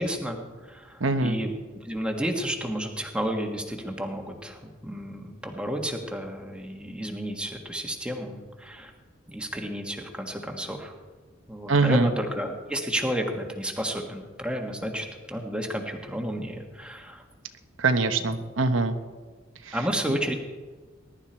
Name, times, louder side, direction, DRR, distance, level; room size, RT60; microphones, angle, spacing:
voice 1, 0.0-1.5 1.8-8.9 9.3-10.9 11.5-17.2 18.3-18.5 19.7-20.3, equal, 5° right, 2 dB, 1.6 m, -31 dB
voice 2, 1.0-1.4 11.7-12.1 17.8-18.9 19.6-19.8 20.1-20.2, right 3 dB, 85° right, 8 dB, 1.1 m, -23 dB
20.0 x 11.5 x 4.5 m, 1.3 s
head